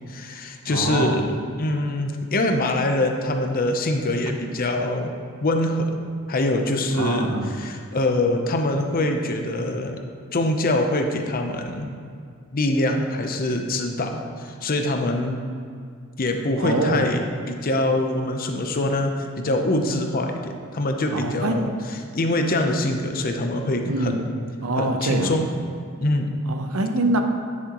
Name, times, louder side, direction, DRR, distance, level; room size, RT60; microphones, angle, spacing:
voice 1, 0.1-5.1 5.4-6.0 6.3-10.0 10.3-11.9 12.5-15.4 16.2-21.7 22.1-24.2 24.8-25.5 26.0-26.4, left 1 dB, 45° left, 4 dB, 0.7 m, -24 dB
voice 2, 0.7-1.3 7.0-7.5 16.6-17.1 21.1-21.6 23.8-24.2 24.6-25.4 26.5-27.2, right 2 dB, 90° right, 5 dB, 0.8 m, -24 dB
9.8 x 7.5 x 3.0 m, 2.3 s
head